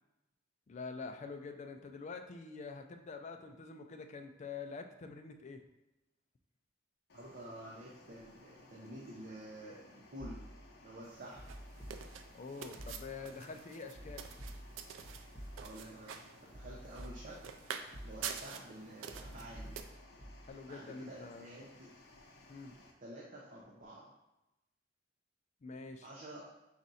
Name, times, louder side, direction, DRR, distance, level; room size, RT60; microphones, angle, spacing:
voice 1, 0.7-5.6 12.3-14.3 20.4-21.5 22.5-22.8 25.6-26.1, left 4 dB, 35° left, 6 dB, 0.3 m, -46 dB
sound 1, 7.1-22.9, left 2 dB, 60° left, 0.7 m, -60 dB
voice 2, 7.1-10.4 10.8-11.4 15.6-17.4 18.0-19.8 20.7-21.9 23.0-24.1 26.0-26.5, right 1 dB, 45° right, -4 dB, 0.6 m, -50 dB
sound 2, 10.2-10.8 11.4-12.4 12.8-13.4 13.9-16.0 16.5-17.6 17.9-18.6 19.1-20.5, equal, 10° left, 1.2 m, -50 dB
sound 3, 11.0-19.8, right 7 dB, 80° right, 0.4 m, -48 dB
4.9 x 2.5 x 4.1 m, 0.95 s
head